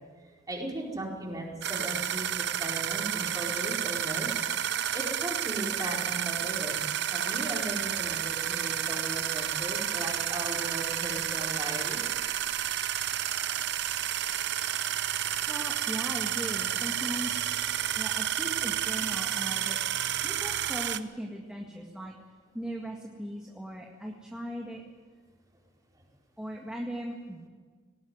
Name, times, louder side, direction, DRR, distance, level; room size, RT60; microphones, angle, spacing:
voice 1, 0.2-4.4 4.9-6.8 7.1-12.0, right 1 dB, 20° right, -1 dB, 4.5 m, -37 dB
sound 1, 1.6-21.0, right 10 dB, 65° right, 0.8 m, -31 dB
voice 2, 15.5-17.6 18.0-19.8 20.2-22.2 22.5-24.8 26.4-27.5, right 1 dB, 5° right, -1 dB, 1.8 m, -38 dB
18.5 x 18.5 x 9.5 m, 1.5 s
head